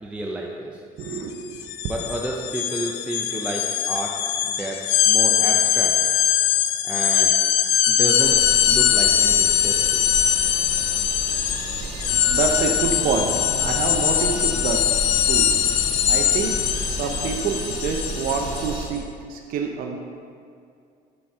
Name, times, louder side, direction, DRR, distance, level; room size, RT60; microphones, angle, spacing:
voice 1, 0.0-0.8 1.9-5.9 6.8-7.3 7.9-10.0, right 1 dB, 5° right, -1 dB, 0.5 m, -31 dB
sound 1, 1.0-1.2 1.5-18.8, left 10 dB, 85° left, 0.5 m, -21 dB
voice 2, 1.0-1.6 12.3-14.9 15.3-15.5 16.1-20.0, right 5 dB, 55° right, 1 dB, 0.7 m, -27 dB
sound 2, 8.2-18.9, right 2 dB, 30° right, 1.6 m, -33 dB
sound 3, 12.0-17.4, left 3 dB, 35° left, 0.7 m, -36 dB
9.5 x 4.4 x 4.7 m, 2.4 s
cardioid pair, 145°, 17 cm